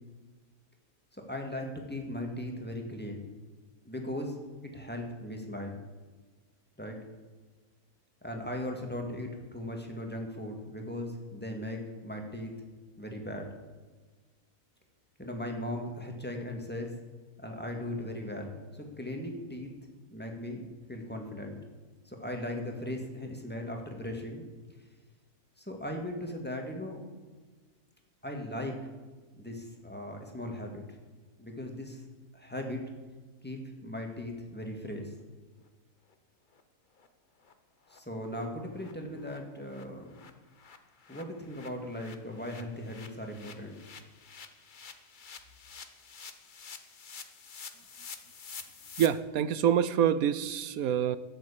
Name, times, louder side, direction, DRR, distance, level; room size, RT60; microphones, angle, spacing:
voice 1, 1.1-3.3 3.8-4.4 4.6-5.8 6.8-7.0 8.2-12.5 13.0-13.5 15.2-16.9 17.4-19.7 20.1-21.6 22.0-24.4 25.6-27.0 28.2-28.8 29.3-30.8 31.4-32.0 32.3-32.8 33.4-35.1 37.9-40.2 41.1-43.8, left 1 dB, 5° left, 2 dB, 2.1 m, -38 dB
sound 1, 36.1-36.2 36.5-36.6 37.0-37.1 37.4-37.5 37.9-38.0 38.3-38.5 38.8-38.9 39.2-49.1, left 5 dB, 40° left, 0.9 m, -49 dB
voice 2, 49.0-51.2, right 9 dB, 70° right, 15 dB, 1.0 m, -26 dB
12.5 x 8.1 x 8.5 m, 1.3 s
omnidirectional pair, 1.7 m